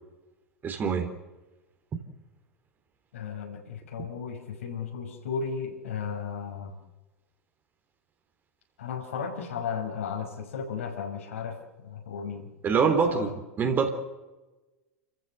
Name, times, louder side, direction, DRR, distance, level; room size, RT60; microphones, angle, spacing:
voice 1, 0.6-1.1 12.6-13.9, right 5 dB, 25° right, 6 dB, 3.4 m, -25 dB
voice 2, 3.1-6.7 8.8-12.5 13.1-13.3, left 6 dB, 65° left, 3 dB, 5.5 m, -35 dB
30.0 x 15.0 x 8.1 m, 1.1 s
figure-of-eight pair, 90°, 8 cm